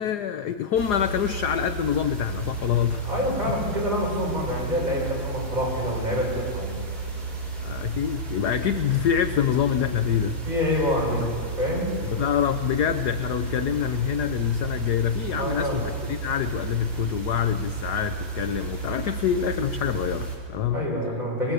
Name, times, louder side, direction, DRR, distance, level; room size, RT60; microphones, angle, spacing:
voice 1, 0.0-3.1 3.5-3.6 7.6-10.4 11.2-11.3 12.0-20.9, left 9 dB, 65° left, 9 dB, 1.1 m, -26 dB
sound 1, 0.7-20.4, right 4 dB, 45° right, 5.1 m, -33 dB
voice 2, 3.0-6.8 10.5-12.0 15.4-15.8 20.7-21.5, left 1 dB, 20° right, -3 dB, 7.4 m, -27 dB
25.5 x 20.5 x 8.3 m, 2.1 s
omnidirectional pair, 2.3 m